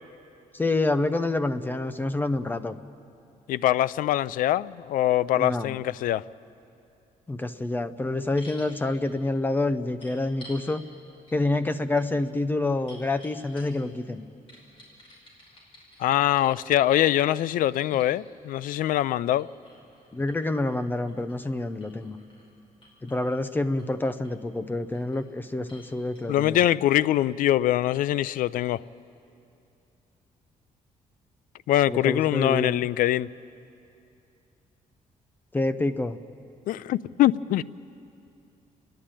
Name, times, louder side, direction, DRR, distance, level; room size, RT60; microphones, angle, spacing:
voice 1, 0.5-2.8 5.4-5.8 7.3-10.8 11.3-14.2 20.1-22.2 23.0-26.6 31.9-32.9 35.5-36.2, left 2 dB, 15° left, 10 dB, 0.6 m, -27 dB
voice 2, 3.5-6.2 16.0-19.5 26.3-28.8 31.7-33.3 36.7-37.6, left 13 dB, 85° left, 19 dB, 0.4 m, -23 dB
sound 1, 8.4-8.7 10.0-10.6 11.3-11.4 11.7-13.9 14.5-18.1 19.1-22.5 22.8-23.4 23.8-24.3 24.7-25.3 25.7-25.9 26.2-26.3, left 1 dB, 40° left, 5.3 m, -52 dB
29.5 x 11.5 x 8.9 m, 2.6 s
cardioid pair, 155°, 14 cm